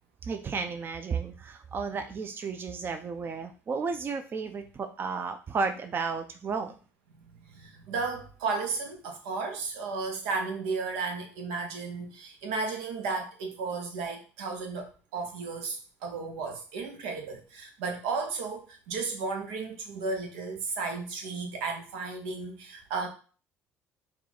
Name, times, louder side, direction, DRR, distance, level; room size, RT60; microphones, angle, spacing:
voice 1, 0.2-6.7, right 5 dB, 35° right, 7 dB, 0.5 m, -33 dB
voice 2, 7.1-23.1, right 4 dB, 85° right, 3 dB, 0.9 m, -34 dB
4.5 x 2.4 x 4.0 m, 0.37 s
supercardioid pair, 85°, 6 cm